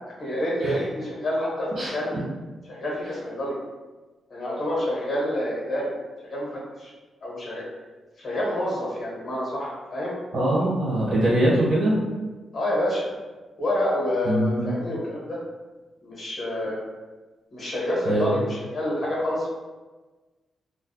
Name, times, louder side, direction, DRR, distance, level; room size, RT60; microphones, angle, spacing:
voice 1, 0.2-2.2 2.7-3.6 4.3-5.9 6.2-6.9 7.2-7.6 8.2-10.1 12.5-13.1 13.6-15.4 16.0-16.8 17.5-19.5, left 1 dB, 45° left, -5 dB, 0.9 m, -28 dB
voice 2, 10.3-12.0 14.2-14.7 18.0-18.3, right 1 dB, 60° right, -7 dB, 1.3 m, -22 dB
2.5 x 2.2 x 2.3 m, 1.2 s
wide cardioid pair, 140°, 0 cm